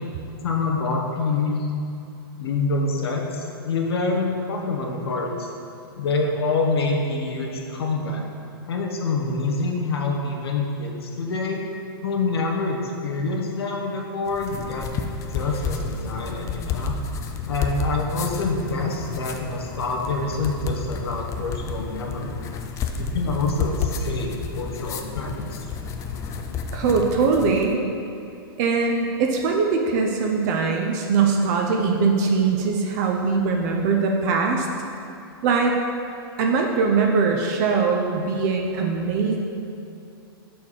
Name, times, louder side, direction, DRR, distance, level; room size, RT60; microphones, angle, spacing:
voice 1, 0.4-1.7 2.4-5.5 6.0-8.3 8.7-11.6 12.0-14.9 15.3-17.0 17.4-22.4 23.0-25.6, left 3 dB, 85° left, 0 dB, 1.0 m, -26 dB
sound 1, 14.3-27.7, left 5 dB, 25° left, 0.4 m, -31 dB
voice 2, 26.7-27.8 28.6-34.7 35.4-35.7 36.4-39.4, right 4 dB, 45° right, 1 dB, 0.6 m, -21 dB
5.5 x 4.3 x 4.9 m, 2.6 s
hypercardioid pair, 130°, 13 cm